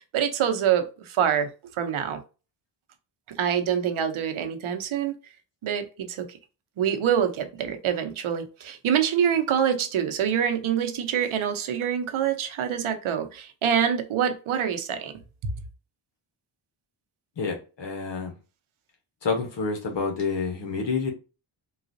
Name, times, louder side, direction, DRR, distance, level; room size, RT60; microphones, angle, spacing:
voice 1, 0.1-1.5 1.8-2.2 3.4-5.1 5.6-6.3 6.8-15.1 15.4-15.5, right 8 dB, 75° right, 0.8 m, -25 dB
voice 2, 17.4-18.3 19.2-21.1, left 4 dB, 60° left, 1.0 m, -28 dB
3.9 x 2.4 x 2.6 m
cardioid pair, 95°, 48 cm